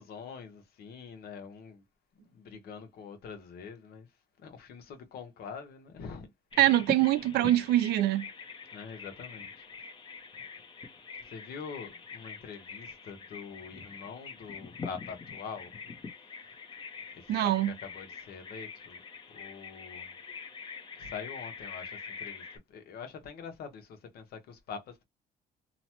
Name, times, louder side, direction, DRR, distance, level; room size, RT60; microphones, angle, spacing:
voice 1, 0.0-1.8 2.2-4.1 4.4-6.3 8.7-9.7 11.2-15.7 17.1-19.0 19.3-20.1 21.0-25.0, left 6 dB, 65° left, 0.9 m, -44 dB
Bird vocalization bird call bird song, 6.5-22.6, left 5 dB, 30° left, 0.8 m, -44 dB
voice 2, 6.6-8.3 17.3-17.7, right 14 dB, 75° right, 0.4 m, -24 dB
2.9 x 2.1 x 2.9 m
cardioid pair, 110°, 17 cm